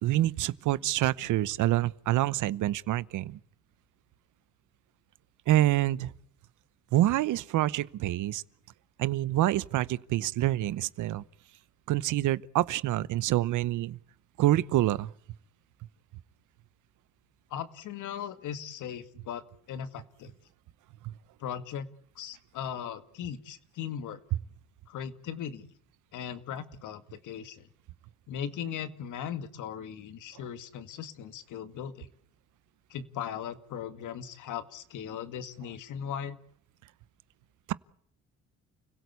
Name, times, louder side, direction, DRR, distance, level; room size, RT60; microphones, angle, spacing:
voice 1, 0.0-3.4 5.5-6.1 6.9-8.4 9.0-11.2 11.9-14.0 14.4-15.1 21.0-21.1 37.7-37.8, right 14 dB, 85° right, 0.9 m, -27 dB
voice 2, 17.5-19.4 19.7-20.3 21.4-21.9 22.2-24.2 24.9-25.7 26.1-27.7 28.3-32.1 32.9-36.4, left 8 dB, 80° left, 2.1 m, -38 dB
30.0 x 17.0 x 8.4 m
cardioid pair, 90°, 30 cm